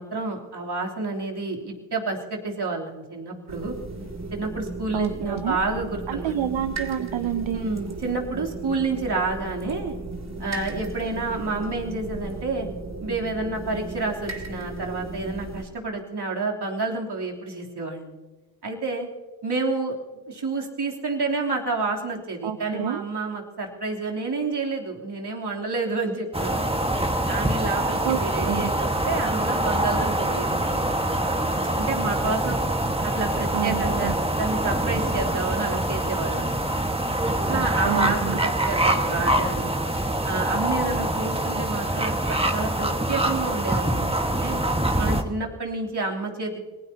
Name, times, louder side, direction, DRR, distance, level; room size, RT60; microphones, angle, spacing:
voice 1, 0.0-3.7 4.3-6.3 7.5-9.9 10.4-12.7 13.0-18.1 18.6-19.1 19.4-20.0 20.3-26.7 27.3-31.2 31.7-32.6 33.0-36.7 37.2-39.8 40.2-44.6 45.0-46.6, right 3 dB, 60° right, -1 dB, 3.4 m, -29 dB
sound 1, 3.5-15.6, right 3 dB, 35° right, 2.7 m, -35 dB
voice 2, 4.9-5.6 6.1-7.7 22.4-23.0 28.0-28.7 33.5-34.2 37.8-38.4, right 10 dB, 80° right, 10 dB, 0.8 m, -28 dB
sound 2, 26.3-45.2, right 1 dB, 10° right, 1.6 m, -25 dB
26.0 x 19.0 x 2.9 m, 1.3 s
cardioid pair, 45°, 45 cm